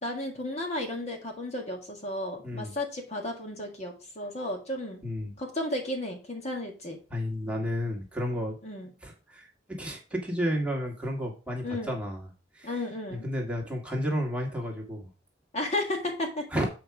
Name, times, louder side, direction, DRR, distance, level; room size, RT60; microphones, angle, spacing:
voice 1, 0.0-5.0 5.4-7.0 8.6-8.9 11.6-12.0 12.6-13.2 15.5-16.5, left 1 dB, 40° left, 2 dB, 1.7 m, -33 dB
voice 2, 5.0-5.3 7.1-8.6 9.0-12.3 12.5-12.8 13.1-15.1 16.5-16.7, equal, 5° right, -2 dB, 1.8 m, -32 dB
7.8 x 4.7 x 4.8 m, 0.33 s
head